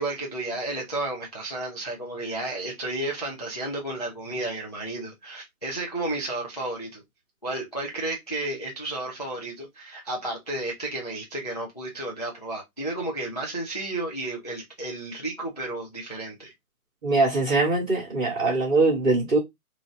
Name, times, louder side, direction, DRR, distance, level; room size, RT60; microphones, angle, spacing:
voice 1, 0.0-7.0 7.4-16.5, right 2 dB, 30° left, 0.4 m, -32 dB
voice 2, 17.0-19.4, right 3 dB, 5° right, 0.7 m, -22 dB
3.1 x 2.6 x 3.5 m
hypercardioid pair, 165°, 44 cm